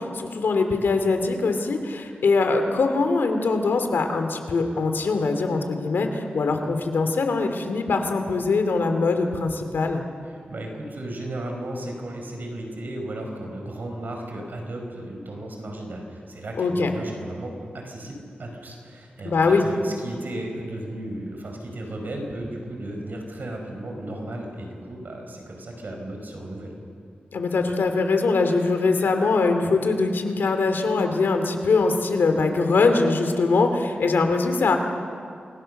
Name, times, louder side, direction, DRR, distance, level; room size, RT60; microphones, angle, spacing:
voice 1, 0.0-10.1 16.6-16.9 19.2-19.7 27.3-34.8, left 3 dB, 90° left, 6 dB, 2.6 m, -22 dB
voice 2, 10.2-26.8, right 1 dB, 65° right, 2 dB, 5.2 m, -35 dB
28.0 x 22.0 x 6.6 m, 2.3 s
wide cardioid pair, 75°, 4 cm